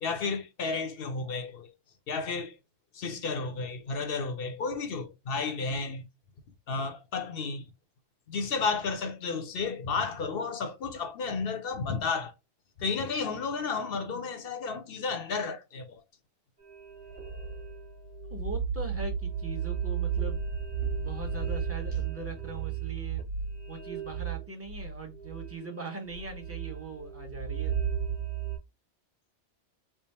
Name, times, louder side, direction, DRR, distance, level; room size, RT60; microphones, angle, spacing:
voice 1, 0.0-1.7 2.1-2.5 2.9-6.1 6.7-7.7 8.3-12.3 12.8-16.0, left 4 dB, 55° left, 0.9 m, -32 dB
sound 1, 16.6-28.6, right 7 dB, 45° right, 1.6 m, -34 dB
voice 2, 18.3-20.4 21.0-23.2 23.7-27.7, right 2 dB, 15° right, 0.9 m, -41 dB
3.5 x 2.1 x 4.2 m
omnidirectional pair, 1.2 m